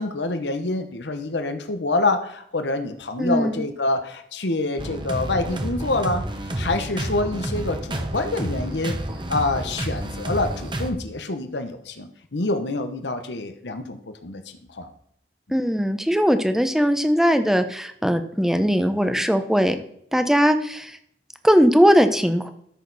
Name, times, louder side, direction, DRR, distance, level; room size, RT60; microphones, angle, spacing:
voice 1, 0.0-6.2 6.6-9.0 9.3-14.4 14.7-14.9, left 2 dB, 85° left, 8 dB, 1.0 m, -26 dB
voice 2, 3.2-3.6 15.5-19.8 20.1-21.0 21.4-22.5, equal, ahead, 9 dB, 0.8 m, -19 dB
sound 1, 4.8-10.9, right 1 dB, 30° right, 1.1 m, -30 dB
13.5 x 6.5 x 4.1 m, 0.68 s
head